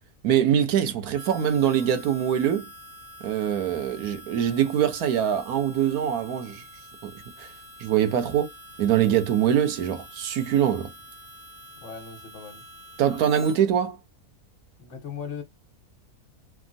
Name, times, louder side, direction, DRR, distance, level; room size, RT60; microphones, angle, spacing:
voice 1, 0.2-2.7 3.2-6.6 7.0-7.1 7.4-7.5 7.8-8.5 8.8-10.9 13.0-14.0, right 9 dB, 80° right, 1.2 m, -23 dB
Harmonica, 1.1-13.6, left 1 dB, 55° right, 1.3 m, -46 dB
voice 2, 11.8-12.6 14.8-15.4, left 6 dB, 60° left, 1.2 m, -38 dB
3.4 x 2.1 x 2.5 m
omnidirectional pair, 1.6 m